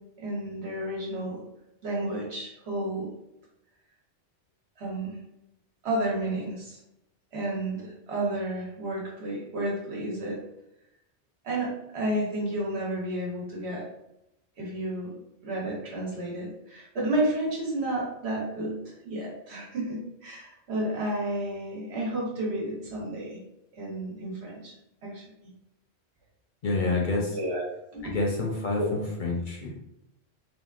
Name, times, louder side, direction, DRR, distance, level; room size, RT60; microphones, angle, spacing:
voice 1, 0.2-1.4 1.8-3.1 4.8-5.2 5.8-6.8 7.3-10.4 11.4-13.8 14.6-15.1 15.4-23.4 23.7-24.7 25.0-25.2 27.3-27.6 27.9-28.1 28.8-28.9, right 1 dB, 75° right, -3 dB, 1.2 m, -31 dB
voice 2, 26.6-27.4 28.0-29.7, left 3 dB, 55° left, -1 dB, 0.6 m, -28 dB
3.5 x 2.3 x 2.4 m, 0.85 s
omnidirectional pair, 1.1 m